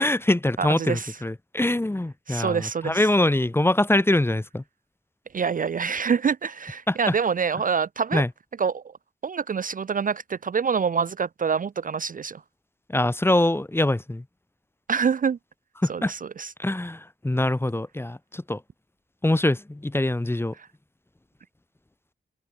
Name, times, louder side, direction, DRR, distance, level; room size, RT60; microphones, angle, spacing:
voice 1, 0.0-4.6 6.9-7.1 8.1-8.3 12.9-14.2 15.8-16.1 16.6-18.6 19.2-20.5, left 1 dB, 10° left, 1.0 m, -23 dB
voice 2, 0.6-1.2 2.3-3.1 5.3-8.2 8.6-8.9 9.2-12.4 14.9-15.4 15.9-16.5 20.6-20.7, right 6 dB, 40° right, 0.5 m, -26 dB
open air
wide cardioid pair, 100°, 20 cm